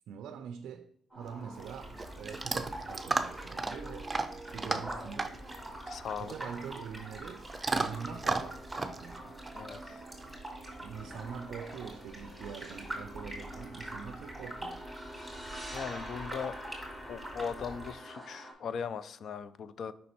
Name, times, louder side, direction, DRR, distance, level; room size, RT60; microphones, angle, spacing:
voice 1, 0.1-4.1 4.5-5.4 6.2-7.5 7.7-9.3 10.8-14.9, right 7 dB, 80° right, 0.3 m, -44 dB
sound 1, 1.1-18.5, equal, 10° left, 2.4 m, -49 dB
Chewing mastication / Dog, 1.2-10.4, right 3 dB, 20° right, 0.6 m, -36 dB
sound 2, 1.6-17.9, right 1 dB, 5° right, 2.5 m, -45 dB
voice 2, 5.9-6.3 9.5-10.0 15.7-16.5 17.1-19.9, left 6 dB, 60° left, 0.4 m, -39 dB
5.4 x 4.0 x 4.3 m
cardioid pair, 90°, 0 cm